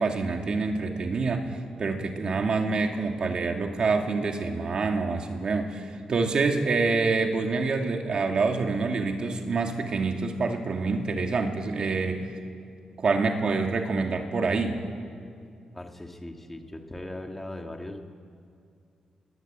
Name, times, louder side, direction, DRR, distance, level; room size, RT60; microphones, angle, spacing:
voice 1, 0.0-12.3 13.0-14.8, right 4 dB, 45° right, 4 dB, 2.4 m, -26 dB
voice 2, 15.7-18.0, left 1 dB, 10° left, 4 dB, 1.8 m, -39 dB
29.0 x 21.0 x 8.9 m, 2.4 s
wide cardioid pair, 165°, 2 cm